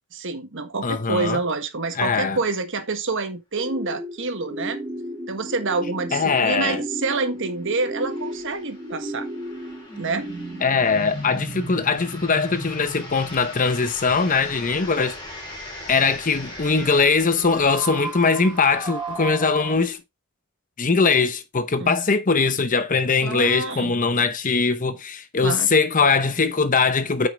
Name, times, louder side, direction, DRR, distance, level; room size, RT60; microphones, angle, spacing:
voice 1, 0.1-4.8 5.3-9.3 10.0-10.3 21.8-22.0 23.2-23.9 25.4-25.7, right 3 dB, 60° right, 1.5 m, -27 dB
voice 2, 0.8-1.4 2.0-2.4 6.1-6.8 10.6-15.2 15.9-20.0 20.8-27.3, left 4 dB, 35° left, 0.8 m, -21 dB
sound 1, 3.6-19.7, right 1 dB, 15° right, 2.1 m, -36 dB
sound 2, 5.9-6.0 6.3-6.4 7.2-20.0, left 2 dB, 20° left, 4.2 m, -42 dB
9.3 x 6.1 x 3.3 m
head